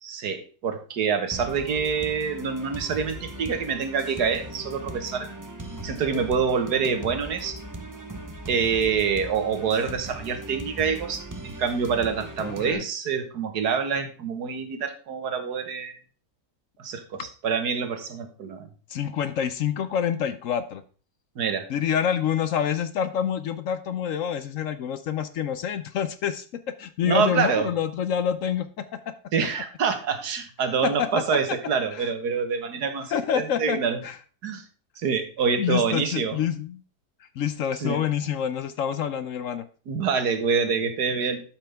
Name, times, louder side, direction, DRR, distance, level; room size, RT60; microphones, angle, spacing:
voice 1, 0.0-5.3 5.8-7.6 8.5-16.0 16.8-18.7 21.3-21.7 27.0-27.7 29.3-34.0 34.4-34.6 35.0-36.4 37.8-38.0 39.9-41.4, right 6 dB, 80° right, 8 dB, 1.8 m, -26 dB
sound 1, 1.3-12.7, right 1 dB, 20° right, 0.4 m, -39 dB
voice 2, 12.4-12.8 18.9-20.8 21.7-26.5 26.8-28.8 30.8-31.1 31.9-32.1 33.1-34.2 35.6-36.8 37.2-39.6, left 8 dB, 65° left, 12 dB, 0.9 m, -27 dB
12.0 x 5.9 x 3.4 m, 0.39 s
omnidirectional pair, 1.7 m